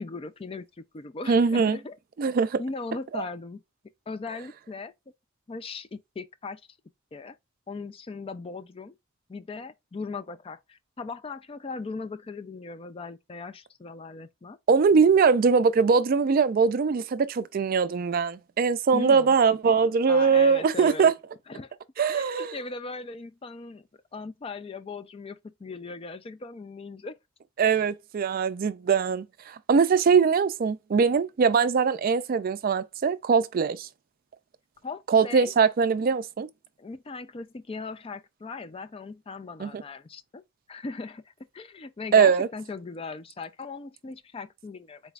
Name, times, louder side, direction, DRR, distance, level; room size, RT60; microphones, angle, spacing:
voice 1, 0.0-2.0 2.6-3.6 4.1-4.9 5.5-6.6 7.1-7.4 7.7-9.0 9.3-14.6 18.9-19.3 20.1-21.1 21.5-21.7 22.1-27.2 34.8-35.5 36.8-40.4 40.7-41.2 41.5-45.0, left 3 dB, 25° left, 0.4 m, -38 dB
voice 2, 1.3-1.8 2.2-2.6 3.2-3.3 14.7-21.1 22.0-22.6 27.6-33.9 35.1-36.5 39.6-39.8 42.1-42.5, right 5 dB, 45° right, 0.3 m, -22 dB
4.0 x 3.3 x 2.4 m
head